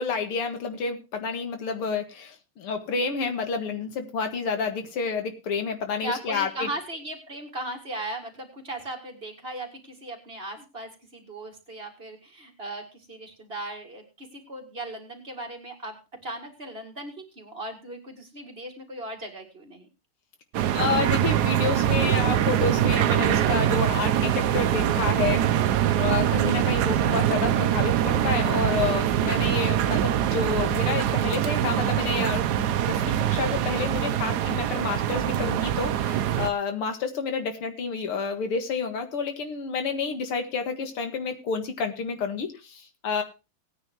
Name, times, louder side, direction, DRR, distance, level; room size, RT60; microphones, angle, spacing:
voice 1, 0.0-6.7 20.7-25.4 26.0-43.2, left 5 dB, 85° left, 6 dB, 2.5 m, -29 dB
voice 2, 6.0-19.9, right 1 dB, 25° right, 2 dB, 2.2 m, -37 dB
sound 1, 20.5-36.5, right 11 dB, 65° right, 1.0 m, -24 dB
18.0 x 9.6 x 3.0 m, 0.28 s
omnidirectional pair, 2.4 m